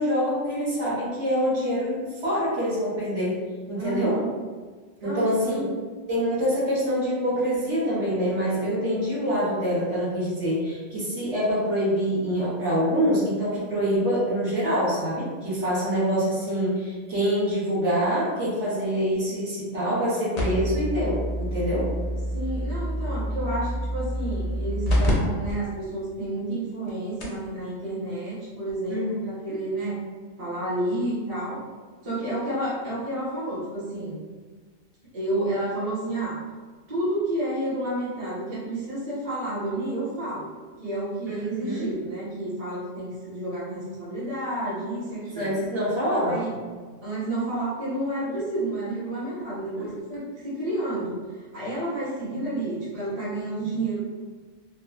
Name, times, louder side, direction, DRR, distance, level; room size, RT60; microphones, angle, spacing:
voice 1, 0.0-3.4 3.7-4.2 5.0-5.7 6.1-21.9 28.9-29.5 41.3-41.9 45.3-46.4 48.3-48.4 49.8-49.9, equal, 60° right, -8 dB, 1.2 m, -25 dB
voice 2, 3.8-4.3 5.0-5.7 22.3-30.0 30.4-31.7 32.0-34.2 35.1-36.4 36.9-40.5 40.8-45.5 46.2-46.6 47.0-54.0, right 1 dB, 35° right, -9 dB, 0.8 m, -30 dB
sound 1, 20.4-25.1 25.5-25.6 26.2-26.3 26.9-27.0 27.2-27.5 28.7-28.8, equal, 50° left, 0.5 m, -27 dB
3.0 x 2.3 x 2.3 m, 1.4 s
omnidirectional pair, 1.4 m